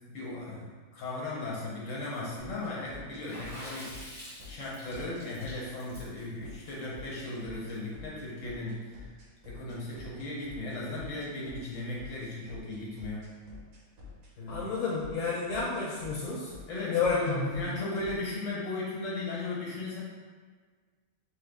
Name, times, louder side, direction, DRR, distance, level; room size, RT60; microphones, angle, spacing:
voice 1, 0.1-9.1 9.4-13.4 14.4-14.6 16.7-20.0, left 2 dB, 65° left, -5 dB, 1.2 m, -37 dB
sound 1, 2.4-18.3, left 4 dB, 80° right, 1.2 m, -48 dB
Water / Splash splatter, 3.3-7.7, equal, ahead, 0.8 m, -47 dB
voice 2, 14.5-16.5 16.9-17.6, left 4 dB, 80° left, -5 dB, 1.0 m, -30 dB
3.2 x 2.3 x 3.4 m, 1.5 s
omnidirectional pair, 1.5 m